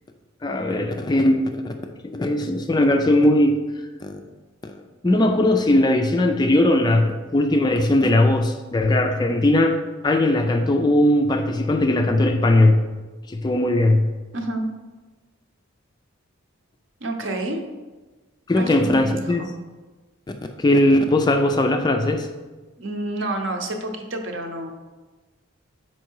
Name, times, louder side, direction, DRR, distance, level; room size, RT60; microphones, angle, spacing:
voice 1, 0.4-1.7 2.0-3.6 4.0-4.2 5.0-12.8 13.3-14.1 18.5-19.4 20.6-22.3, left 1 dB, 20° left, 5 dB, 0.3 m, -19 dB
voice 2, 14.3-14.7 17.0-17.6 18.6-19.5 22.8-24.7, right 1 dB, 60° right, 3 dB, 0.8 m, -29 dB
6.3 x 4.6 x 4.6 m, 1.3 s
head